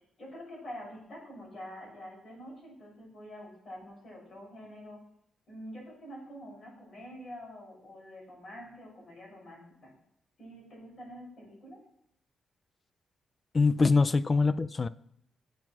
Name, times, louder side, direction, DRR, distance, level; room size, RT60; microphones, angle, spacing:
voice 1, 0.2-5.0 5.5-9.9 10.4-11.8, equal, 40° left, 6.4 m, -46 dB
voice 2, 13.5-14.9, left 4 dB, 25° left, 0.4 m, -24 dB
15.5 x 7.9 x 6.1 m
wide cardioid pair, 165°, 0 cm